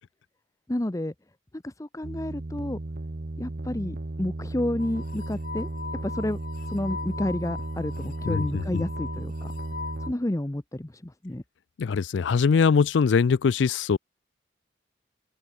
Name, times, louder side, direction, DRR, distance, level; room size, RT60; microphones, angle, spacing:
voice 1, 0.7-1.1 1.6-2.8 3.4-5.7 6.0-6.4 6.7-9.5 10.0-11.4, left 1 dB, 15° left, 0.7 m, -30 dB
sound 1, 2.0-10.1, right 2 dB, 50° right, 1.0 m, -35 dB
sound 2, 4.8-10.1, left 5 dB, 45° left, 2.4 m, -39 dB
voice 2, 8.3-8.8 11.8-14.0, left 5 dB, 70° left, 0.4 m, -22 dB
open air
head